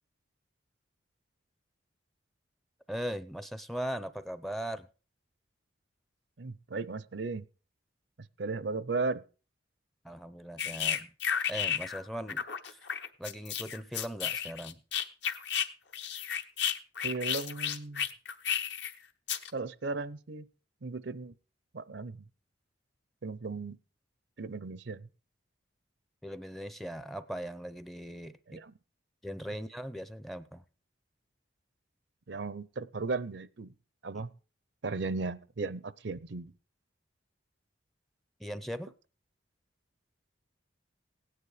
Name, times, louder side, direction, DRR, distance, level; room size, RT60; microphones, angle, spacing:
voice 1, 2.9-4.9 10.0-11.1 11.5-12.9 13.2-14.8 26.2-28.6 29.2-30.6 34.1-34.2 38.4-38.9, equal, ahead, 13 dB, 0.5 m, -39 dB
voice 2, 6.4-7.4 8.4-9.2 17.0-18.0 19.5-20.5 20.8-21.3 21.7-22.3 23.2-23.8 24.4-25.1 28.5-28.7 32.3-33.7 34.0-34.3 34.8-36.5, right 3 dB, 60° right, 18 dB, 0.6 m, -36 dB
sound 1, 10.6-12.0 12.3-15.7 15.9-18.9 19.3-19.5, left 8 dB, 60° left, 1.0 m, -32 dB
17.0 x 9.7 x 4.9 m, 0.37 s
head